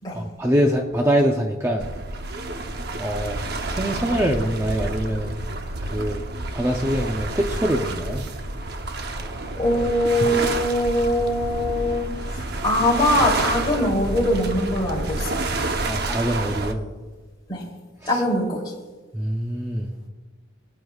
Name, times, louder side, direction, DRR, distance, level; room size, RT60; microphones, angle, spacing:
voice 1, 0.1-1.8 3.0-3.4 3.7-5.3 5.8-6.2 6.5-8.3 15.9-16.8 18.0-18.2 19.1-19.9, equal, 15° right, 1 dB, 0.6 m, -24 dB
sound 1, 1.8-16.7, right 2 dB, 50° right, 0.8 m, -29 dB
voice 2, 9.0-9.3 9.6-15.5 17.5-17.6 18.1-18.6, left 1 dB, 20° left, -3 dB, 3.2 m, -22 dB
22.5 x 9.6 x 2.4 m, 1.3 s
head